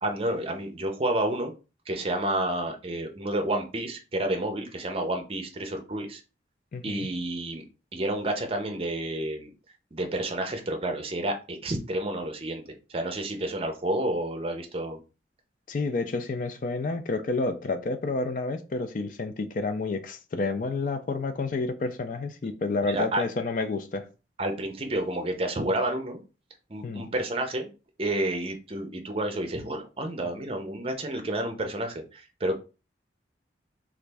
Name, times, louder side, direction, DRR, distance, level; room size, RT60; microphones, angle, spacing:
voice 1, 0.0-1.5 1.9-6.2 6.8-7.6 7.9-9.5 9.9-15.0 22.8-23.2 24.4-26.2 26.7-27.7 28.0-32.6, right 1 dB, 30° right, 0.5 m, -30 dB
voice 2, 6.7-7.1 15.7-24.0 26.8-27.1, left 3 dB, 45° left, 0.4 m, -30 dB
3.1 x 2.5 x 3.3 m
head